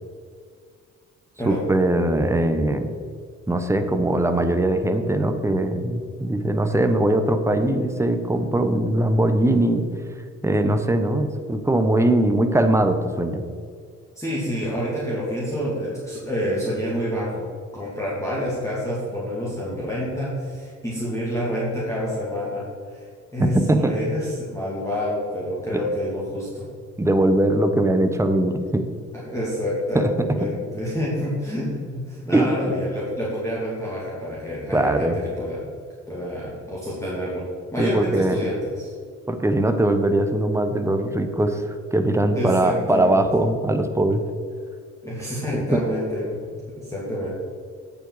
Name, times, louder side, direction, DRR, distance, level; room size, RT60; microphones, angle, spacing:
voice 1, 1.5-3.0 3.5-9.9 10.4-13.4 23.4-24.0 25.7-25.8 27.0-28.9 29.9-30.0 30.4-30.5 32.3-32.5 34.7-35.2 37.8-38.4 39.3-44.2 45.5-45.8, right 1 dB, 10° right, 7 dB, 0.9 m, -21 dB
voice 2, 14.2-17.5 17.7-22.6 22.9-26.6 29.1-35.1 35.4-35.6 36.1-37.4 37.7-38.9 42.3-43.2 45.0-46.4 46.8-47.3, equal, 10° left, -7 dB, 2.5 m, -28 dB
8.6 x 7.2 x 4.7 m, 2.1 s
cardioid pair, 90°, 30 cm